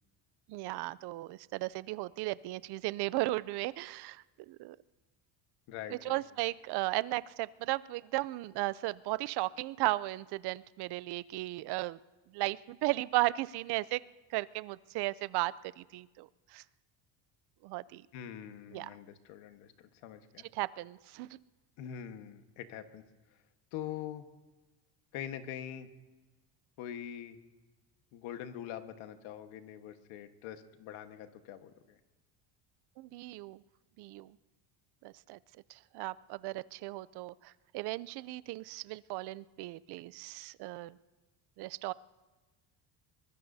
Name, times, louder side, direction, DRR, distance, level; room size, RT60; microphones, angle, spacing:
voice 1, 0.5-4.8 5.9-12.0 12.3-14.0 14.3-16.6 17.6-18.1 18.7-18.9 20.5-21.4 33.0-33.6 34.0-34.4 35.0-35.4 35.7-41.0 41.6-41.9, right 19 dB, 55° right, 19 dB, 0.5 m, -35 dB
voice 2, 5.7-6.2 18.1-20.5 21.8-23.0 23.7-24.2 25.1-25.9 26.8-27.4 28.1-32.0, left 10 dB, 85° left, 8 dB, 1.5 m, -44 dB
23.0 x 21.0 x 2.7 m, 1.2 s
cardioid pair, 170°, 47 cm